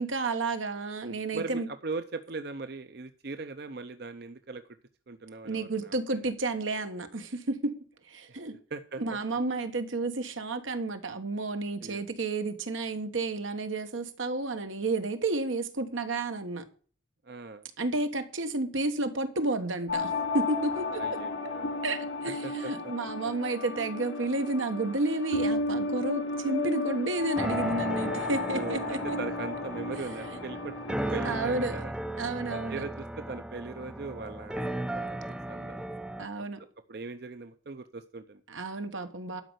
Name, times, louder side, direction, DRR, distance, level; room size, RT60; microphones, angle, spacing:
voice 1, 0.0-1.7 5.4-7.8 8.1-8.6 9.0-16.6 17.8-21.2 21.8-29.2 31.2-31.8 32.2-32.8 36.2-36.6 38.5-39.4, right 2 dB, 85° right, 1.4 m, -31 dB
voice 2, 1.3-4.6 5.1-6.3 8.3-8.4 8.7-9.2 11.8-12.0 17.2-17.7 21.0-21.9 22.4-22.7 28.2-30.7 31.1-31.9 32.7-35.8 36.9-38.4, right 3 dB, 55° right, 0.6 m, -39 dB
sound 1, 19.9-31.4, left 3 dB, 85° left, 2.5 m, -33 dB
sound 2, 27.4-36.3, right 1 dB, 5° right, 0.4 m, -36 dB
12.0 x 5.3 x 8.0 m
head